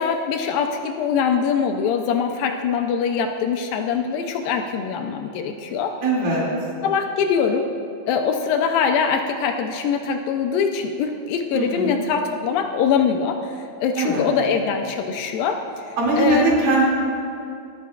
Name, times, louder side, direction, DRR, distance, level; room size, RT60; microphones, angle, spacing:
voice 1, 0.0-5.9 6.8-7.7 8.1-15.6 16.2-16.6, left 6 dB, 85° left, 4 dB, 2.0 m, -23 dB
voice 2, 6.0-6.5 11.5-12.0 14.0-14.3 16.0-16.8, right 2 dB, 40° right, -5 dB, 3.1 m, -20 dB
19.5 x 12.0 x 2.4 m, 2.6 s
omnidirectional pair, 4.7 m